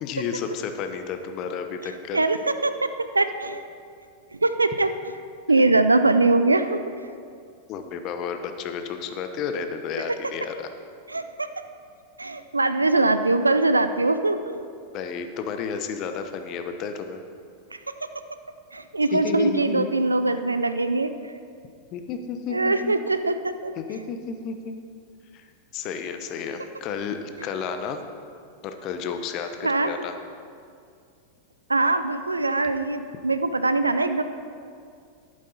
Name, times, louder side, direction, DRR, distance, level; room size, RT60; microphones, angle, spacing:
voice 1, 0.0-2.2 7.7-10.7 14.9-17.2 19.1-19.9 21.9-22.9 23.8-24.8 25.3-25.4 25.7-28.0 28.6-30.1, left 6 dB, 45° left, 7 dB, 0.9 m, -32 dB
voice 2, 2.1-3.6 4.3-4.9 5.5-6.8 11.1-11.5 12.2-14.6 18.7-21.1 22.5-23.7 29.6-29.9 31.7-34.2, right 2 dB, 90° right, 10 dB, 0.4 m, -22 dB
11.5 x 8.7 x 4.1 m, 2.3 s
figure-of-eight pair, 95°, 0 cm